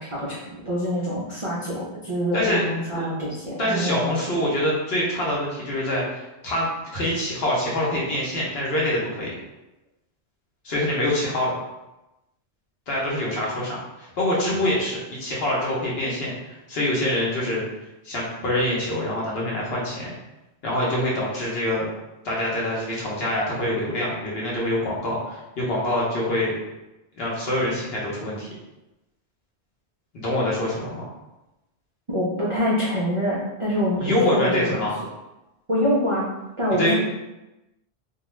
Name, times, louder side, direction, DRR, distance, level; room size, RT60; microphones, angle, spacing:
voice 1, 0.0-4.1 32.1-34.8 35.7-36.3 36.6-36.9, equal, 55° right, -7 dB, 0.3 m, -25 dB
voice 2, 2.3-3.1 3.6-9.4 10.6-11.5 12.9-17.6 18.0-20.1 20.6-21.9 22.2-26.5 27.1-28.5 30.1-31.1 34.0-34.9 36.8-36.9, left 1 dB, 60° left, -5 dB, 1.0 m, -25 dB
2.4 x 2.2 x 3.0 m, 0.97 s
omnidirectional pair, 1.3 m